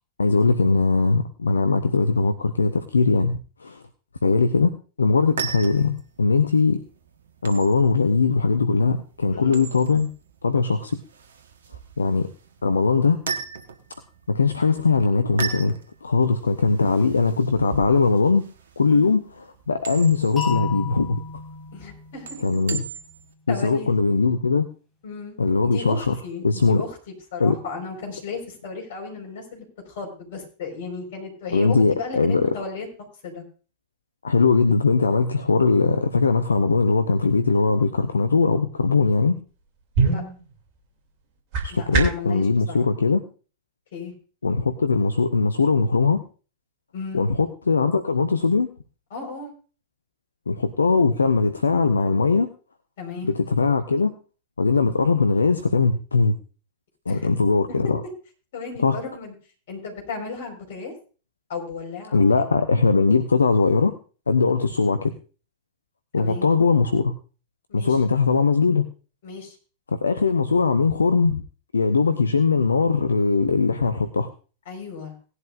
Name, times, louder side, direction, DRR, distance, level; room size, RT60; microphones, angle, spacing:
voice 1, 0.2-3.8 4.2-6.8 7.4-10.1 10.4-11.0 12.0-12.3 12.6-13.2 14.3-18.4 18.8-21.2 22.4-22.8 23.5-24.7 25.4-26.1 26.4-26.8 27.4-27.6 31.5-32.6 34.2-39.4 41.6-43.2 44.4-46.2 47.1-48.7 50.5-52.5 53.2-54.1 54.6-56.4 57.1-58.0 58.8-59.0 62.1-64.0 64.3-65.1 66.1-67.1 67.7-68.9 69.9-71.4 71.7-74.3, left 4 dB, 75° left, 11 dB, 0.7 m, -20 dB
sound 1, 5.1-23.3, right 6 dB, 65° right, 1.3 m, -38 dB
voice 2, 9.3-9.7 18.9-19.2 21.7-22.4 23.5-23.9 25.0-25.3 25.6-27.0 27.3-32.9 33.2-33.4 40.0-40.2 41.7-42.9 43.9-44.1 46.9-47.2 49.1-49.5 53.0-53.3 57.1-57.3 57.7-57.8 58.5-59.3 59.7-60.9 61.5-62.2 66.2-66.4 67.7-68.0 69.2-69.5 74.7-75.1, left 4 dB, 55° left, 1 dB, 4.7 m, -35 dB
sound 2, 20.4-23.3, left 5 dB, 10° left, 7.5 m, -33 dB
sound 3, 39.5-42.4, right 4 dB, 45° right, 2.8 m, -26 dB
18.0 x 11.0 x 2.5 m, 0.36 s
figure-of-eight pair, 90°, 0 cm